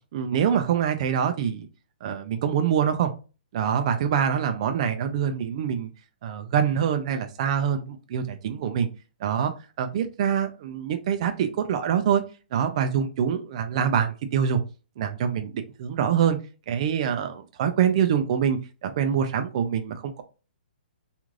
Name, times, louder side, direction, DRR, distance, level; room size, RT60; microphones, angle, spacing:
voice 1, 0.1-1.7 2.0-3.1 3.5-5.9 6.2-8.9 9.2-9.5 9.8-12.2 12.5-14.6 15.0-16.4 16.7-20.2, right 8 dB, 35° right, 7 dB, 0.3 m, -25 dB
3.1 x 2.4 x 2.4 m, 0.33 s
hypercardioid pair, 165°, 6 cm